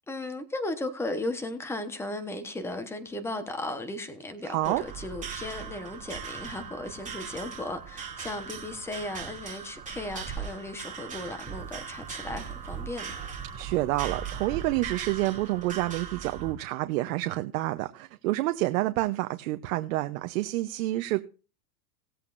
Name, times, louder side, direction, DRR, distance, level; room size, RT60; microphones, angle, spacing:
voice 1, 0.1-13.1, left 2 dB, 5° left, 1.1 m, -36 dB
voice 2, 4.4-4.8 13.5-21.2, right 17 dB, 60° right, 0.9 m, -28 dB
sound 1, 4.6-16.5, right 7 dB, 15° right, 2.9 m, -39 dB
19.0 x 8.0 x 2.6 m
supercardioid pair, 145°, 47 cm